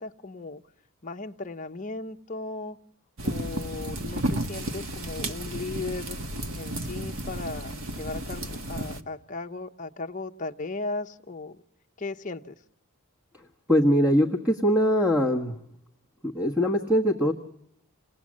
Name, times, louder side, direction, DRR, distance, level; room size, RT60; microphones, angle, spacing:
voice 1, 0.0-0.6 1.0-2.8 3.2-6.2 6.6-11.6 12.0-12.5, left 3 dB, 35° left, 4 dB, 0.9 m, -36 dB
sound 1, 3.2-9.0, right 1 dB, 65° right, 1.6 m, -33 dB
voice 2, 13.7-15.6 16.2-17.3, equal, 5° right, 0 dB, 1.4 m, -22 dB
28.5 x 19.0 x 7.5 m, 0.76 s
head